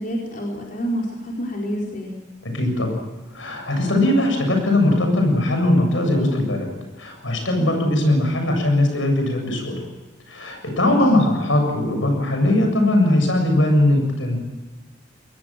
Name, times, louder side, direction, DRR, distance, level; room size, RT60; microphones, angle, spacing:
voice 1, 0.0-2.2 10.8-11.0, equal, 45° left, -2 dB, 4.6 m, -28 dB
voice 2, 2.4-3.0 3.3-6.7 7.0-9.8 10.3-14.4, left 1 dB, 80° left, 4 dB, 7.5 m, -20 dB
23.0 x 20.0 x 7.6 m, 1.3 s
head